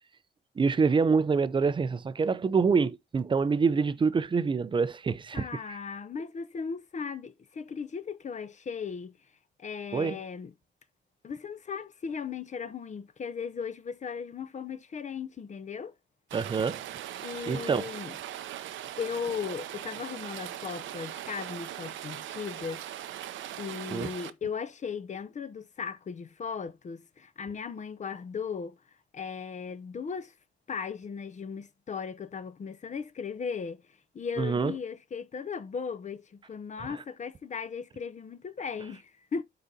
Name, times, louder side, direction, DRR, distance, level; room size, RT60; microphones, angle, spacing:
voice 1, 0.6-5.8 9.9-10.2 16.3-16.8 17.5-17.8 23.9-24.1 34.4-34.7 36.8-36.9, right 5 dB, 25° right, 0.5 m, -26 dB
voice 2, 5.3-9.2 9.6-10.5 11.2-15.9 17.2-18.1 19.0-22.8 23.6-28.8 29.1-30.3 30.7-33.8 34.1-39.4, left 6 dB, 35° left, 0.6 m, -37 dB
Rain, 16.3-24.3, right 12 dB, 75° right, 0.6 m, -40 dB
11.5 x 4.0 x 2.7 m
cardioid pair, 90°, 20 cm